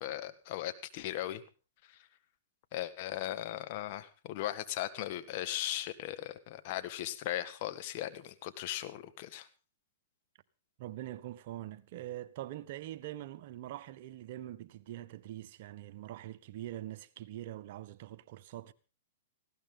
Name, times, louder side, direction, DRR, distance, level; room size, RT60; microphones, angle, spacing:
voice 1, 0.0-1.4 1.9-2.0 2.7-9.5, left 13 dB, 50° left, 1.7 m, -38 dB
voice 2, 10.8-18.7, right 13 dB, 55° right, 1.2 m, -44 dB
19.0 x 16.0 x 3.9 m
hypercardioid pair, 125°, 0 cm